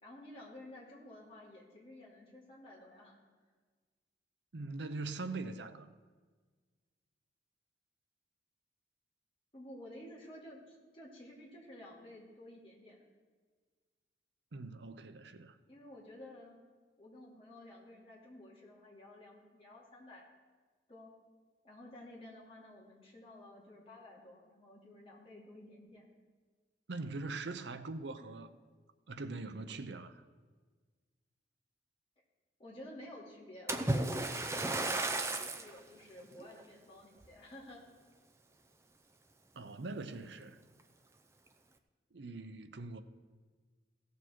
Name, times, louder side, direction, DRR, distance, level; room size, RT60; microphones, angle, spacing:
voice 1, 0.0-3.2 9.5-13.1 15.7-16.6 17.0-20.3 20.9-21.1 21.6-26.1 32.6-37.8, left 1 dB, 30° left, 2.5 m, -52 dB
voice 2, 4.5-5.9 14.5-15.6 26.9-28.5 29.1-30.2 39.5-40.6 42.1-43.0, right 3 dB, 75° right, 0.7 m, -42 dB
Splash splatter, 33.7-35.7 36.4-36.6 37.2-37.3, right 2 dB, 15° right, 0.5 m, -34 dB
16.5 x 6.8 x 4.5 m
head